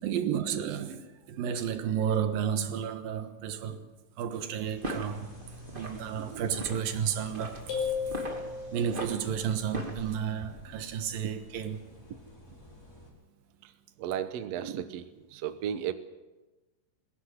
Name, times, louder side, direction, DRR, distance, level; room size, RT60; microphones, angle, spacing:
voice 1, 0.0-3.8 4.2-5.4 5.7-7.7 8.7-11.8, right 8 dB, 90° right, 3.1 m, -32 dB
sound 1, 4.6-10.1, right 1 dB, 20° right, 1.9 m, -41 dB
sound 2, 4.8-13.1, equal, 25° left, 5.4 m, -49 dB
voice 2, 6.2-6.5 13.6-13.7 14.0-15.9, right 10 dB, 65° right, 1.8 m, -35 dB
sound 3, 7.7-9.2, left 6 dB, 75° left, 7.5 m, -34 dB
21.5 x 16.5 x 8.1 m
omnidirectional pair, 4.0 m